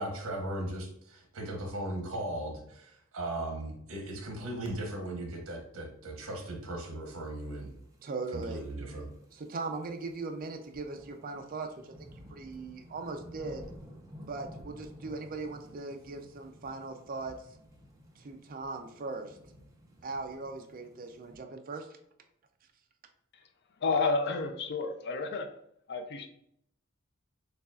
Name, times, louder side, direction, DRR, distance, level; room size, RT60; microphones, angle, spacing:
voice 1, 0.0-7.7 8.3-9.1, right 1 dB, 80° right, 2 dB, 1.0 m, -37 dB
sound 1, 7.1-21.4, equal, 15° right, 0.7 m, -53 dB
voice 2, 8.0-8.6 9.3-13.6 14.2-17.5 18.2-19.4 20.0-22.0, right 3 dB, 45° right, 5 dB, 0.5 m, -39 dB
voice 3, 23.8-25.6 25.9-26.3, left 3 dB, 55° left, 7 dB, 0.5 m, -31 dB
6.6 x 2.4 x 2.4 m, 0.73 s
head